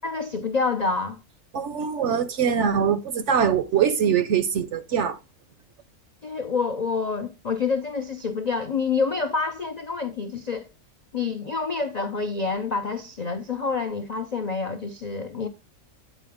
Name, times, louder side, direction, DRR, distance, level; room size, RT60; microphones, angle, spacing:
voice 1, 0.0-1.2 6.2-10.7 11.1-15.5, left 4 dB, 60° left, 0.4 m, -27 dB
voice 2, 1.5-5.2, right 7 dB, 60° right, 0.8 m, -23 dB
9.2 x 4.6 x 3.4 m
omnidirectional pair, 1.6 m